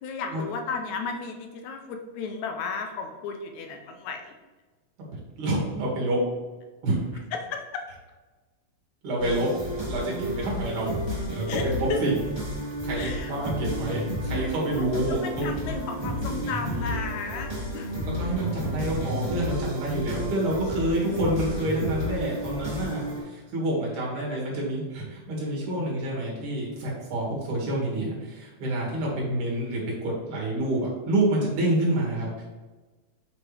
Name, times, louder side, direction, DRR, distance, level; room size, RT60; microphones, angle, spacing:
voice 1, 0.0-4.3 7.3-7.9 11.5-12.0 12.9-13.3 14.8-18.1 24.2-24.7, left 5 dB, 75° left, 4 dB, 2.0 m, -34 dB
voice 2, 5.4-6.2 6.8-7.0 9.0-12.2 12.5-15.6 18.0-32.4, right 1 dB, 80° right, -3 dB, 3.6 m, -28 dB
sound 1, 9.2-23.2, equal, 10° right, 1.8 m, -31 dB
7.9 x 5.7 x 3.3 m, 1.3 s
omnidirectional pair, 3.5 m